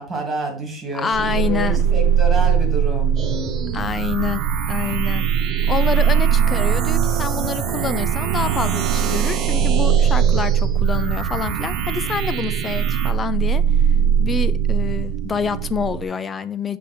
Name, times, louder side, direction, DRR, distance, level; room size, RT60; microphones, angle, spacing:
voice 1, 0.0-3.9 13.3-14.6, right 2 dB, 10° right, 2.2 m, -30 dB
voice 2, 0.9-1.9 3.7-5.3 5.7-13.6 14.2-16.8, left 6 dB, 20° left, 0.4 m, -27 dB
sound 1, 1.1-16.0, right 8 dB, 70° right, 0.4 m, -20 dB
sound 2, 3.2-13.1, right 6 dB, 35° right, 0.9 m, -28 dB
7.6 x 3.6 x 4.2 m
supercardioid pair, 150°, 0 cm